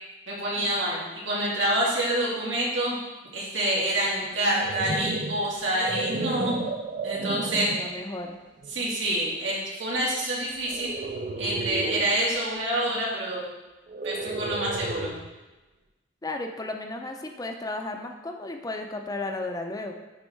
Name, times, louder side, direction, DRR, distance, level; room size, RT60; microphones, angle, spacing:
voice 1, 0.3-3.0 3.3-6.7 7.0-7.7 8.7-10.9 11.4-13.4 14.0-15.2, right 1 dB, 85° right, -5 dB, 2.4 m, -27 dB
sound 1, 4.3-8.0 8.6-8.9 10.7-12.2 13.9-15.3, right 3 dB, 45° right, 0.5 m, -32 dB
voice 2, 7.3-8.4 16.2-19.9, left 2 dB, 20° left, 4 dB, 0.5 m, -34 dB
9.8 x 3.6 x 4.5 m, 1.1 s
head